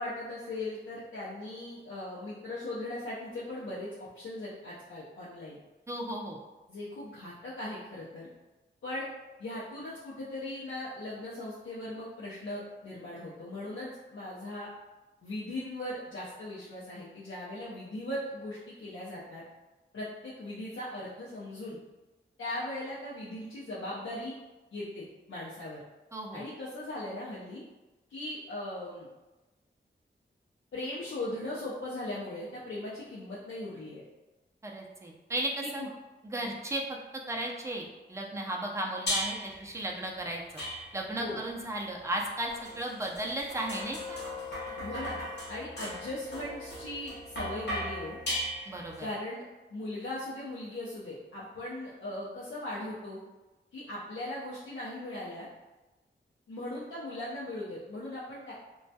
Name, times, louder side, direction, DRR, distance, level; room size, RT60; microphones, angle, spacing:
voice 1, 0.0-5.6 6.7-8.3 8.8-9.1 9.4-14.7 15.2-19.4 19.9-21.8 22.4-24.3 24.7-25.8 26.3-27.6 28.1-29.1 30.7-34.0 35.6-35.9 39.4-39.6 41.1-41.4 44.8-45.2 45.5-48.2 49.0-49.4 49.7-53.2 53.7-55.5 56.5-58.5, left 1 dB, 80° left, -8 dB, 0.5 m, -39 dB
voice 2, 5.9-6.4 26.1-26.4 34.6-35.8 36.2-37.0 37.3-40.4 40.9-44.2 48.7-49.1, right 1 dB, 15° right, 0 dB, 0.4 m, -35 dB
sound 1, 39.1-39.6 40.6-41.2 42.2-49.0, left 1 dB, 60° left, 0.9 m, -37 dB
2.2 x 2.1 x 2.6 m, 1.1 s
wide cardioid pair, 90°, 20 cm